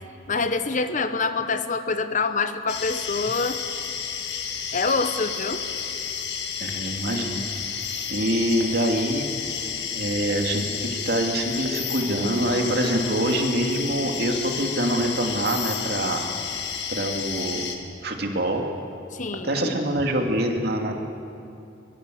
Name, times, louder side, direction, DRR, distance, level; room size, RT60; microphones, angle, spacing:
voice 1, 0.3-3.6 4.7-5.6 19.1-19.8, left 4 dB, 40° left, 10 dB, 1.0 m, -26 dB
sound 1, 2.7-17.8, left 7 dB, 60° left, 2.1 m, -31 dB
voice 2, 6.6-7.5 7.8-9.5 9.9-16.2 16.9-17.6 18.0-18.6 19.4-20.9, right 1 dB, 55° right, 2 dB, 2.6 m, -25 dB
23.0 x 22.5 x 7.9 m, 2.7 s
head